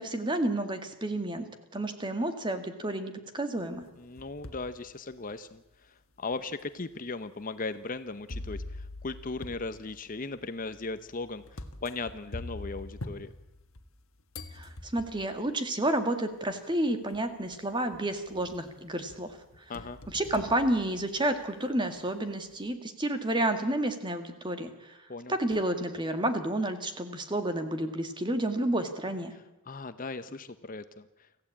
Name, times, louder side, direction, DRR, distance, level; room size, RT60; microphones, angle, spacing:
voice 1, 0.0-1.5 1.7-3.9 14.5-19.4 20.1-25.0 25.3-29.3, right 1 dB, 20° right, 7 dB, 2.0 m, -30 dB
sound 1, 3.8-4.7 5.3-5.4 6.3-6.4 8.3-14.0 14.3-15.3 16.5-16.6 17.1-17.5 17.9-18.7 19.1-21.5, left 2 dB, 65° left, 1.6 m, -44 dB
voice 2, 4.0-13.3 19.7-20.0 25.1-25.4 29.7-31.1, left 3 dB, 40° left, 12 dB, 0.8 m, -38 dB
25.5 x 15.5 x 8.6 m, 0.96 s
head